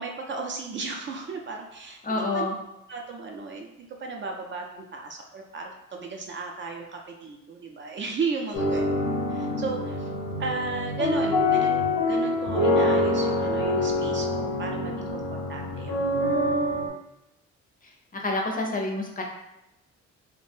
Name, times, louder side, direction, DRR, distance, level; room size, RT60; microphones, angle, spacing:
voice 1, 0.0-2.5 2.9-3.7 4.0-9.0 9.3-10.1 10.4-16.0, right 4 dB, 40° right, 2 dB, 0.4 m, -34 dB
voice 2, 2.0-2.5 18.2-19.2, left 2 dB, 30° left, 1 dB, 0.5 m, -27 dB
sound 1, 8.5-16.9, left 2 dB, 85° left, 0.7 m, -25 dB
2.5 x 2.1 x 3.2 m, 0.89 s
cardioid pair, 90°, 30 cm